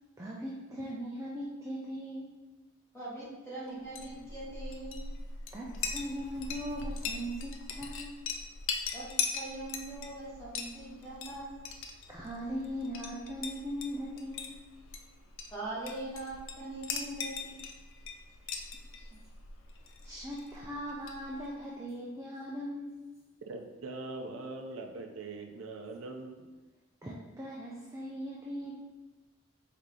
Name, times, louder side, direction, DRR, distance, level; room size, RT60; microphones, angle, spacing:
voice 1, 0.2-2.3 5.5-8.2 12.1-14.6 18.7-19.2 20.0-23.0 27.0-28.7, equal, 15° right, -5 dB, 0.4 m, -39 dB
voice 2, 2.9-5.1 8.9-11.5 15.5-17.5, right 2 dB, 15° left, -8 dB, 1.4 m, -42 dB
Chink clink, 3.8-21.6, left 5 dB, 70° left, 0.4 m, -41 dB
voice 3, 23.5-26.5, right 3 dB, 75° right, 3 dB, 0.5 m, -42 dB
4.8 x 2.8 x 3.7 m, 1.2 s
head